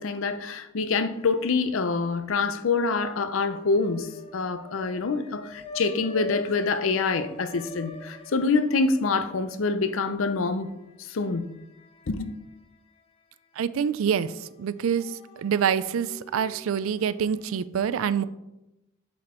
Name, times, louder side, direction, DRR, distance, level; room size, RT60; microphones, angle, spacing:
voice 1, 0.0-10.7 11.0-11.5 12.1-12.4, left 4 dB, 70° left, 0.6 m, -26 dB
sound 1, 1.1-1.9 2.2-12.6 13.0-13.1 14.2-17.6, left 2 dB, 30° left, 0.7 m, -45 dB
voice 2, 13.6-18.2, right 7 dB, 80° right, 0.4 m, -26 dB
7.6 x 4.2 x 4.3 m
head